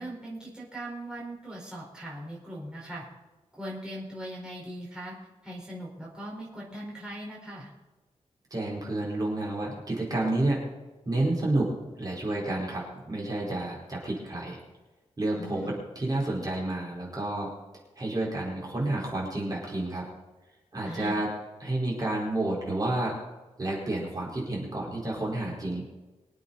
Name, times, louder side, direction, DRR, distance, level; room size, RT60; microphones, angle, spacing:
voice 1, 0.0-3.0 3.5-5.1 5.4-7.7 15.4-15.8 20.8-21.2, right 1 dB, 5° right, -6 dB, 4.6 m, -39 dB
voice 2, 8.5-10.6 11.1-11.7 12.0-14.6 15.2-17.5 18.0-20.0 20.7-21.3 21.6-23.2 23.6-25.8, right 2 dB, 30° right, -4 dB, 4.7 m, -30 dB
24.5 x 8.3 x 4.2 m, 1.2 s
wide cardioid pair, 180°, 12 cm